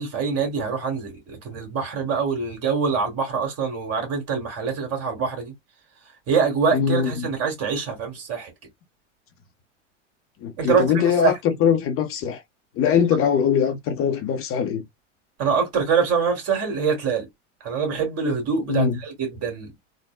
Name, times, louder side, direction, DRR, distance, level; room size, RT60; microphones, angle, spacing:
voice 1, 0.0-5.5 6.3-8.5 10.6-11.3 15.4-17.3 17.6-19.7, right 5 dB, 40° right, 1.9 m, -24 dB
voice 2, 6.7-7.3 10.4-12.4 12.8-14.8 18.7-19.0, left 7 dB, 35° left, 0.7 m, -22 dB
3.7 x 2.1 x 2.3 m
hypercardioid pair, 100°, 37 cm